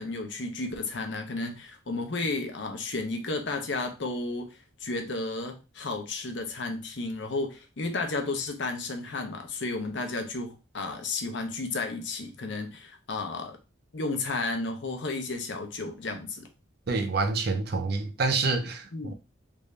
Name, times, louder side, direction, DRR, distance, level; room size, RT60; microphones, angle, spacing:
voice 1, 0.0-13.6 13.9-16.5 18.9-19.1, left 3 dB, 60° left, 0.7 m, -33 dB
voice 2, 16.9-19.1, right 3 dB, 50° right, 0.5 m, -27 dB
3.4 x 2.6 x 3.2 m
head